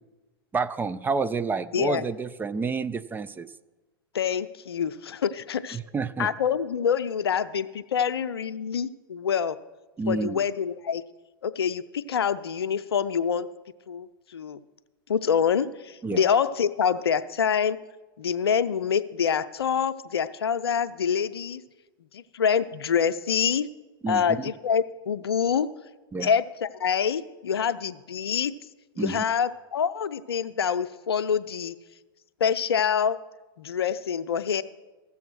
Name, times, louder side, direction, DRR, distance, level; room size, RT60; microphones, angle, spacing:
voice 1, 0.5-3.5 5.7-6.3 10.0-10.4 16.0-16.2 24.0-24.2 26.1-26.3 29.0-29.2, right 4 dB, 15° right, 14 dB, 0.4 m, -29 dB
voice 2, 1.7-2.1 4.1-5.8 6.2-9.6 10.1-11.0 11.4-13.5 13.9-14.6 15.1-17.8 18.2-21.6 22.1-23.7 24.1-25.7 26.2-28.5 29.0-31.8 32.4-33.2 33.6-34.6, left 7 dB, 85° left, 13 dB, 0.5 m, -26 dB
15.0 x 7.1 x 6.2 m, 1.2 s
hypercardioid pair, 95°, 13 cm